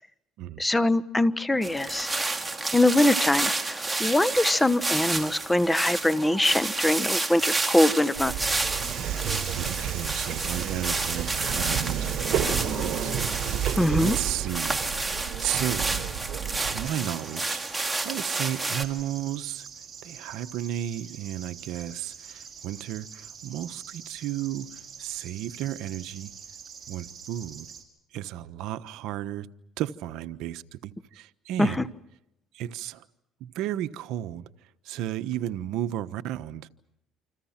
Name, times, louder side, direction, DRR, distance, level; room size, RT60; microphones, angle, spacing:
voice 1, 0.6-2.1 2.7-8.5 13.8-14.2 31.6-31.9, left 1 dB, 10° left, 1.2 m, -23 dB
sound 1, 1.6-18.8, right 3 dB, 15° right, 2.5 m, -30 dB
Subway metro underground, 8.1-16.9, right 9 dB, 60° right, 4.2 m, -31 dB
voice 2, 9.2-16.0 16.7-19.7 20.0-26.3 26.9-27.7 28.1-29.5 29.8-31.8 32.5-33.1 33.4-34.5 34.8-36.7, right 12 dB, 75° right, 1.1 m, -34 dB
sound 2, 16.8-27.8, right 7 dB, 35° right, 5.7 m, -45 dB
28.5 x 27.0 x 5.9 m
cardioid pair, 100°, 0 cm